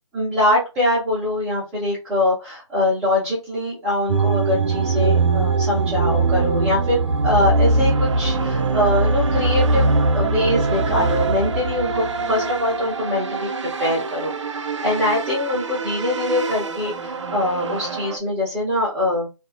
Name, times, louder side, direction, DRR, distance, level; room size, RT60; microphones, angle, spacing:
voice 1, 0.1-19.3, left 1 dB, ahead, -13 dB, 0.5 m, -23 dB
sound 1, 4.1-18.2, right 3 dB, 65° right, 0.5 m, -22 dB
2.8 x 2.5 x 2.4 m, 0.27 s
figure-of-eight pair, 160°, 16 cm